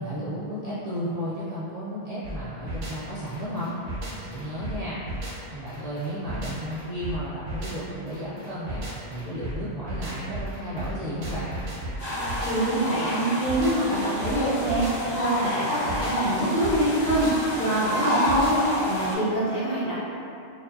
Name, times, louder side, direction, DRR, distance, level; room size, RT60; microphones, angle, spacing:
voice 1, 0.0-3.7 4.0-5.0 5.5-11.6, equal, 70° right, -10 dB, 0.3 m, -33 dB
sound 1, 2.2-18.8, right 1 dB, 45° right, 0.7 m, -36 dB
sound 2, 12.0-19.1, left 1 dB, 50° left, 1.1 m, -29 dB
voice 2, 12.4-19.9, right 1 dB, 75° left, -12 dB, 1.3 m, -25 dB
4.5 x 2.5 x 2.6 m, 2.7 s
omnidirectional pair, 1.4 m